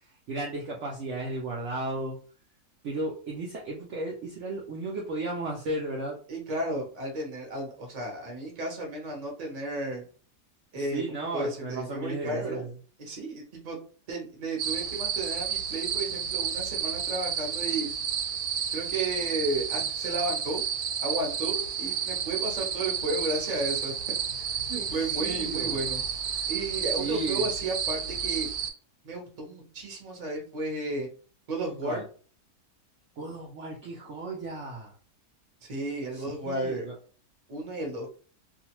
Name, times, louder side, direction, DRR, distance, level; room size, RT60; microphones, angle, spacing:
voice 1, 0.3-2.2 2.8-6.2 10.9-12.7 24.7-25.8 27.0-27.5 31.8-32.0 33.2-34.9 36.1-36.9, right 2 dB, 65° right, -2 dB, 0.8 m, -34 dB
voice 2, 6.3-10.0 10.7-12.6 13.0-13.8 14.1-17.9 18.7-20.6 21.0-23.9 24.4-26.0 26.5-28.5 29.0-31.1 31.5-32.0 35.6-36.9 37.5-38.1, right 2 dB, 35° right, 1 dB, 0.7 m, -33 dB
sound 1, 14.6-28.7, right 7 dB, 90° right, 1.1 m, -31 dB
2.5 x 2.3 x 2.9 m, 0.41 s
omnidirectional pair, 1.6 m